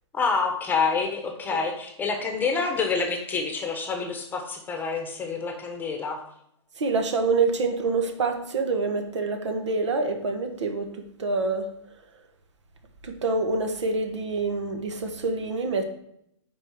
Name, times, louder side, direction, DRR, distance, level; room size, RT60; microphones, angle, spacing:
voice 1, 0.1-6.2, left 4 dB, 10° left, 4 dB, 1.1 m, -27 dB
voice 2, 6.8-11.7 13.0-15.8, right 3 dB, 70° right, 5 dB, 1.6 m, -26 dB
8.9 x 4.6 x 4.8 m, 0.74 s
hypercardioid pair, 140°, 16 cm